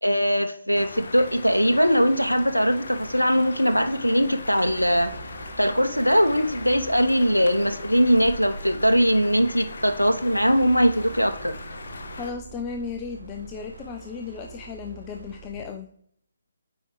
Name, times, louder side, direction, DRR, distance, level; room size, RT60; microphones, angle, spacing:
voice 1, 0.0-5.1 5.6-11.5, equal, 90° left, 7 dB, 0.5 m, -21 dB
sound 1, 0.8-12.3, left 2 dB, 50° left, 1.1 m, -39 dB
sound 2, 4.6-15.7, right 5 dB, 80° right, 1.7 m, -45 dB
voice 2, 12.2-15.9, left 5 dB, 20° left, 5 dB, 0.4 m, -35 dB
8.8 x 4.7 x 3.0 m, 0.67 s
figure-of-eight pair, 140°, 0 cm